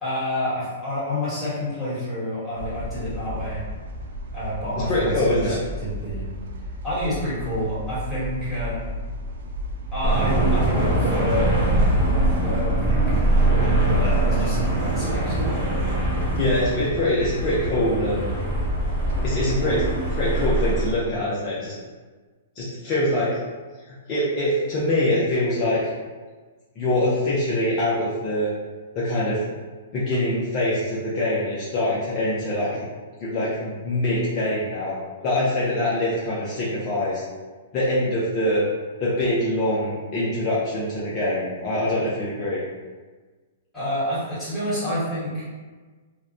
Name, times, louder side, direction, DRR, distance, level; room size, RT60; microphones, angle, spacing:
voice 1, 0.0-3.6 4.3-6.3 6.8-8.8 9.9-13.2 13.9-15.8 43.7-45.4, left 1 dB, ahead, -14 dB, 1.4 m, -29 dB
sound 1, 2.5-20.2, equal, 70° right, 0.4 m, -34 dB
voice 2, 4.7-5.6 16.3-18.3 19.2-19.8 20.1-21.7 22.6-23.4 24.1-25.8 26.8-28.5 28.9-29.4 29.9-32.9 33.2-35.0 35.2-37.2 37.7-38.6 39.0-42.6, left 1 dB, 30° left, -8 dB, 0.6 m, -24 dB
sound 2, 10.0-20.9, right 1 dB, 35° right, 0.7 m, -22 dB
2.7 x 2.1 x 2.4 m, 1.4 s
hypercardioid pair, 150°, 0 cm